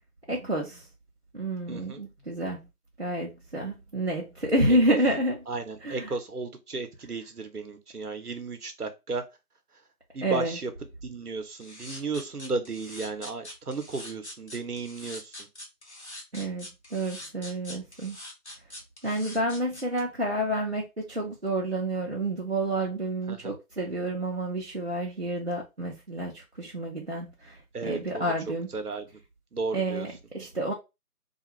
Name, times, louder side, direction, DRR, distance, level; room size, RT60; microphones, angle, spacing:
voice 1, 0.3-0.8 1.3-2.7 3.0-5.4 5.8-6.1 10.2-10.6 16.3-18.2 19.0-28.7 29.7-30.7, right 1 dB, 45° right, 0.6 m, -29 dB
voice 2, 1.7-2.0 4.7-5.0 5.5-9.2 10.1-10.7 11.0-15.5 23.3-23.5 27.7-28.3 28.7-29.0 29.5-30.1, right 3 dB, 75° right, 0.8 m, -34 dB
sound 1, 11.6-20.0, left 1 dB, 45° left, 0.9 m, -43 dB
2.4 x 2.3 x 2.9 m
figure-of-eight pair, 165°, 46 cm